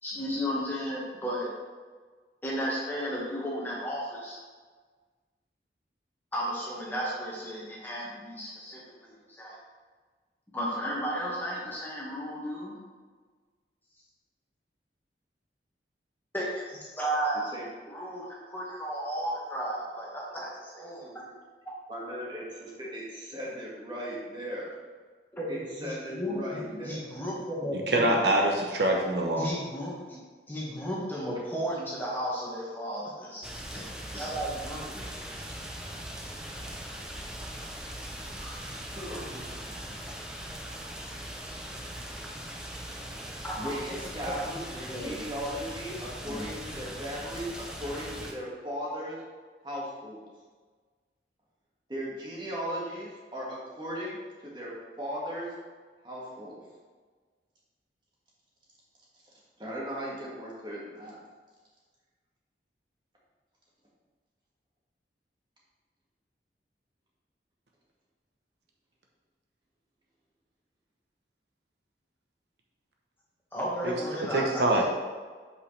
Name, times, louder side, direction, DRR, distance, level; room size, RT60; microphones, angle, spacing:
voice 1, 0.0-1.5 2.4-4.4 6.3-9.6 10.5-12.8 16.3-17.5 17.9-21.4 25.3-28.2 29.4-30.2 30.5-33.8 34.1-35.4 43.4-43.5 44.2-44.6 44.9-45.2 46.3-46.4 73.5-74.8, equal, 10° left, -6 dB, 1.7 m, -34 dB
voice 2, 21.9-24.7 25.5-27.1 34.1-34.2 38.1-40.1 43.6-49.2 49.6-50.2 51.9-55.6 56.0-56.6 59.6-61.2, equal, 25° right, -5 dB, 1.9 m, -37 dB
voice 3, 27.9-29.5 74.3-74.8, right 1 dB, 75° right, 0 dB, 1.0 m, -24 dB
sound 1, 33.4-48.3, right 1 dB, 5° right, 0.7 m, -40 dB
8.3 x 5.5 x 3.3 m, 1.5 s
head